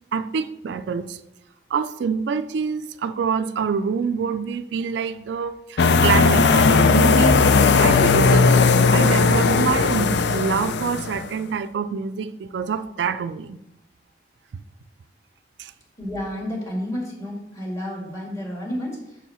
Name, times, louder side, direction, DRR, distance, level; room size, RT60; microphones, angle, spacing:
voice 1, 0.1-1.2 1.7-7.5 7.8-8.5 8.9-13.6 15.6-15.7, right 5 dB, 75° right, 11 dB, 0.3 m, -26 dB
sound 1, 5.8-11.3, left 4 dB, 75° left, 0.4 m, -17 dB
voice 2, 16.0-19.2, equal, 15° left, -3 dB, 1.8 m, -31 dB
6.3 x 4.6 x 5.5 m, 0.88 s
head